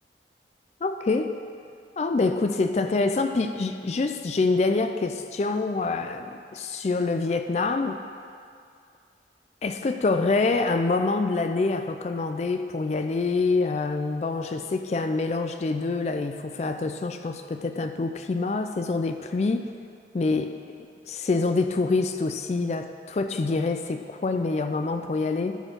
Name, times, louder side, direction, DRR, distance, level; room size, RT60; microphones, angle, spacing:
voice 1, 0.8-1.4 2.0-8.0 9.6-19.7 20.1-20.6 21.1-25.6, left 3 dB, 40° left, 7 dB, 0.3 m, -26 dB
11.5 x 4.4 x 6.5 m, 2.3 s
head